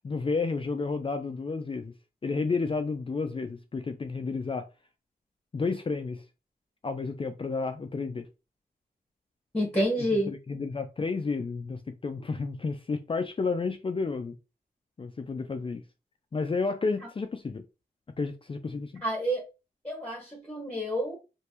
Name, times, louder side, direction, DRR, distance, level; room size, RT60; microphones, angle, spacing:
voice 1, 0.0-1.9 2.2-4.7 5.5-6.2 6.8-8.3 10.1-14.4 15.0-15.8 16.3-17.6 18.2-19.0, left 4 dB, 35° left, 0.4 m, -31 dB
voice 2, 9.5-10.3 19.0-19.5 19.8-21.2, equal, 10° left, 1.2 m, -28 dB
3.3 x 2.6 x 2.8 m
cardioid pair, 75°, 17 cm